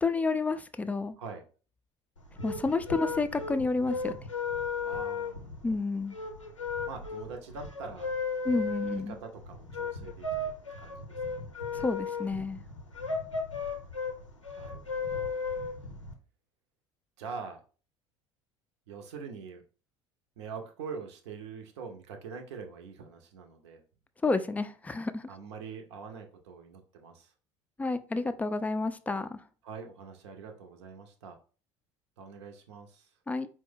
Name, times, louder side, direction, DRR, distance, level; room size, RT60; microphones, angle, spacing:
voice 1, 0.0-1.1 2.4-4.1 5.6-6.2 8.4-9.2 11.7-12.6 24.2-25.3 27.8-29.4 33.3-33.5, left 3 dB, 10° left, 0.3 m, -30 dB
sound 1, 2.2-16.1, left 4 dB, 90° left, 0.6 m, -35 dB
voice 2, 4.8-5.6 6.9-8.1 8.9-10.5 10.8-11.5 14.6-15.4 17.2-17.6 18.9-19.6 20.4-23.8 25.3-27.3 29.6-31.4 32.2-33.1, right 5 dB, 65° right, 0.6 m, -44 dB
4.5 x 2.1 x 3.7 m
figure-of-eight pair, 65°, 16 cm